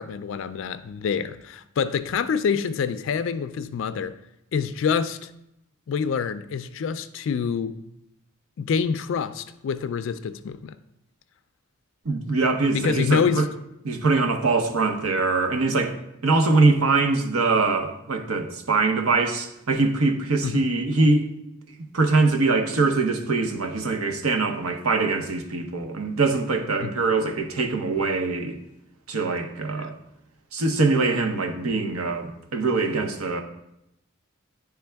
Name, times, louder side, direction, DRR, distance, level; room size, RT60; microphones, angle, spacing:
voice 1, 0.0-4.2 4.5-5.3 5.9-7.8 8.6-10.7 12.7-13.4 20.4-20.6 26.8-26.9, left 6 dB, 60° left, 0.3 m, -26 dB
voice 2, 12.0-13.5 13.8-16.0 16.2-21.3 21.9-28.6 29.1-29.9 30.5-33.4, right 3 dB, 85° right, 0.8 m, -23 dB
9.8 x 3.4 x 3.4 m
head